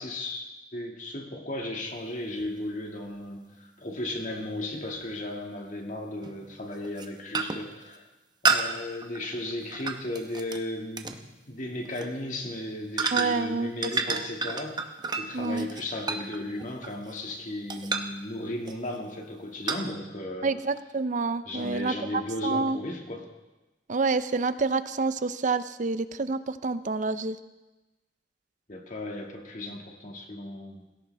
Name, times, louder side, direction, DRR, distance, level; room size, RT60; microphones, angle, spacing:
voice 1, 0.0-8.0 8.4-14.9 15.2-20.5 21.5-23.3 28.7-30.8, left 1 dB, 45° left, 1 dB, 2.1 m, -35 dB
sound 1, 2.4-2.5 5.0-5.1 6.2-6.4 6.8-7.1 7.3-7.7 8.4-10.6 11.0-11.2 11.8-12.1 13.0-13.5 13.8-17.3 17.7-18.2 18.7-19.0 19.7-19.8, right 4 dB, 25° right, 0.9 m, -30 dB
voice 2, 13.1-13.7 14.1-14.2 15.3-15.7 20.4-22.8 23.9-27.4, right 3 dB, 45° right, 13 dB, 0.6 m, -28 dB
17.5 x 16.5 x 3.5 m, 1.1 s
head